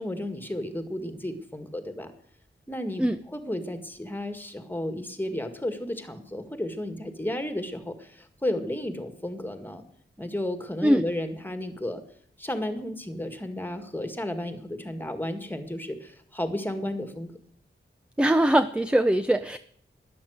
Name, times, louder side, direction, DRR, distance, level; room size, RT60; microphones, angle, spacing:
voice 1, 0.0-2.1 2.7-9.8 10.2-12.0 12.4-17.3, left 1 dB, 10° left, 8 dB, 1.9 m, -33 dB
voice 2, 18.2-19.6, right 1 dB, 5° right, 11 dB, 0.5 m, -21 dB
13.0 x 11.0 x 8.0 m, 0.62 s
wide cardioid pair, 110°, 20 cm